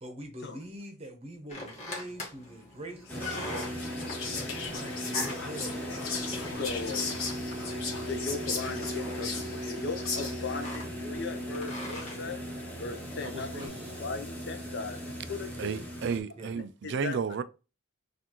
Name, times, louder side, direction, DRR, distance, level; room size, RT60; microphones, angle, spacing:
voice 1, 0.0-5.9 13.2-14.0 16.4-16.6, right 1 dB, 25° right, 0.8 m, -44 dB
sound 1, 1.5-13.7, left 1 dB, 30° left, 1.4 m, -44 dB
Whispering, 3.1-10.6, left 4 dB, 70° left, 1.2 m, -37 dB
sound 2, 3.1-16.2, equal, 10° left, 1.0 m, -38 dB
voice 2, 6.4-7.1 8.1-12.4 12.8-13.5 14.0-15.0 15.3-15.8 16.8-17.2, left 4 dB, 50° left, 0.6 m, -37 dB
voice 3, 15.6-17.4, right 6 dB, 50° right, 0.3 m, -32 dB
6.7 x 2.5 x 3.0 m
head